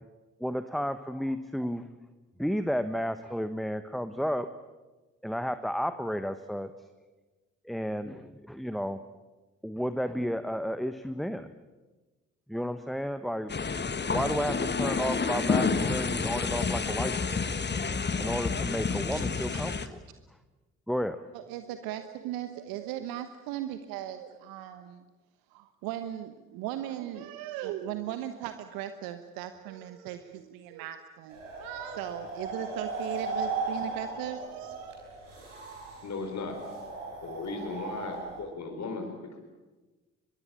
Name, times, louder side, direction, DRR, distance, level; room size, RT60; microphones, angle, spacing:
voice 1, 0.4-1.9 2.4-4.5 5.2-6.7 7.6-9.0 9.6-11.5 12.5-13.5 14.1-17.4 18.2-20.0 20.9-21.2, equal, ahead, 11 dB, 1.2 m, -32 dB
sound 1, 13.5-19.9, left 4 dB, 30° left, 1.6 m, -29 dB
voice 2, 19.1-19.8 21.3-25.0 25.5-35.0, right 12 dB, 70° right, 10 dB, 1.2 m, -38 dB
sound 2, 31.3-38.4, right 3 dB, 90° right, 4.9 m, -37 dB
voice 3, 36.0-36.6 37.2-39.4, left 3 dB, 45° left, 3 dB, 4.3 m, -37 dB
23.0 x 23.0 x 8.8 m, 1.2 s
figure-of-eight pair, 45°, 37 cm